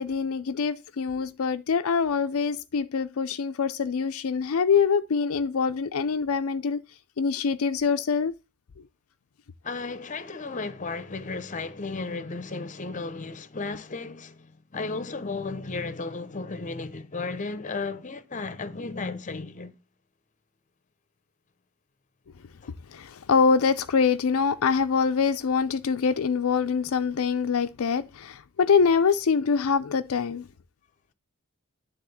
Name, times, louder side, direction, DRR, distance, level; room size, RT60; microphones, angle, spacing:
voice 1, 0.0-6.8 7.2-8.3 22.9-30.5, left 5 dB, 75° left, 0.5 m, -24 dB
voice 2, 9.6-19.7 22.6-22.7, left 3 dB, 35° left, 0.8 m, -34 dB
10.0 x 3.6 x 7.0 m
head